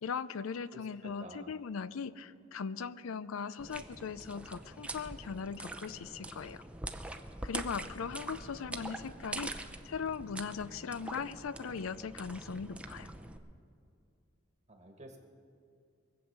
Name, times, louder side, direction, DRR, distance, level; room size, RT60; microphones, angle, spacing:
voice 1, 0.0-6.6 7.4-13.1, left 6 dB, 85° left, 16 dB, 0.5 m, -39 dB
voice 2, 0.7-1.5 14.7-15.2, right 1 dB, 35° right, 3 dB, 1.3 m, -50 dB
sound 1, 3.6-13.4, right 1 dB, 5° right, 0.6 m, -44 dB
22.5 x 8.0 x 6.7 m, 2.4 s
head